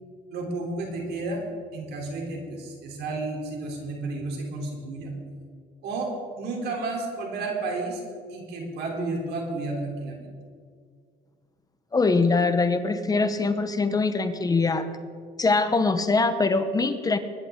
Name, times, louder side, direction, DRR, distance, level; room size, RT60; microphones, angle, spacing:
voice 1, 0.3-1.4 1.7-5.1 5.8-8.0 8.3-10.3, right 2 dB, 75° right, 1 dB, 3.4 m, -32 dB
voice 2, 11.9-14.9 15.4-17.2, left 3 dB, 20° left, 9 dB, 0.9 m, -23 dB
22.0 x 10.0 x 3.7 m, 2.1 s
cardioid pair, 110°, 17 cm